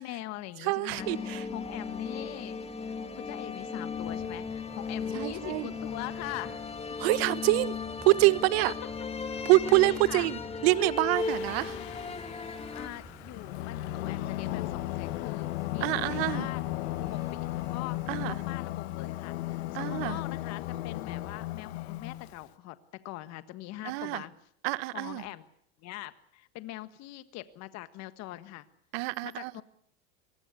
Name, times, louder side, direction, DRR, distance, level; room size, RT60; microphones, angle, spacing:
voice 1, 0.0-2.6 2.9-6.6 9.8-10.3 11.5-11.8 12.7-16.6 17.0-18.0 18.2-24.3 24.9-25.5 25.8-28.6 29.2-29.6, left 16 dB, 55° left, 1.5 m, -42 dB
voice 2, 0.6-1.4 5.1-5.7 7.0-7.7 8.0-8.7 9.4-11.8 15.8-16.5 18.1-18.4 19.7-20.2 23.8-24.2 24.6-25.2 28.9-29.5, right 20 dB, 75° right, 1.2 m, -26 dB
sound 1, 1.0-12.9, left 5 dB, 20° left, 2.7 m, -36 dB
sound 2, 3.9-18.4, equal, 10° right, 6.0 m, -50 dB
Singing, 11.1-22.4, left 16 dB, 85° left, 1.3 m, -36 dB
24.0 x 20.0 x 8.3 m
supercardioid pair, 115°, 31 cm